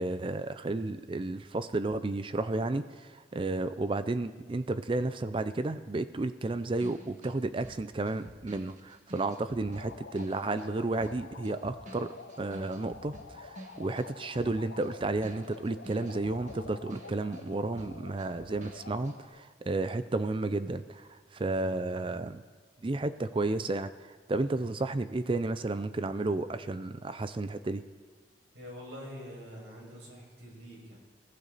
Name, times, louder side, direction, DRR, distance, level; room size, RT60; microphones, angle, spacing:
voice 1, 0.0-22.4 22.8-27.8, right 2 dB, 30° right, 12 dB, 0.4 m, -32 dB
sound 1, 6.4-10.7 11.0-17.5 17.7-19.2, right 1 dB, 45° right, 1.7 m, -50 dB
sound 2, 9.4-19.4, left 4 dB, 80° left, 0.7 m, -48 dB
voice 2, 28.5-31.0, equal, 85° right, -3 dB, 6.2 m, -45 dB
21.5 x 15.5 x 4.1 m, 1.5 s
head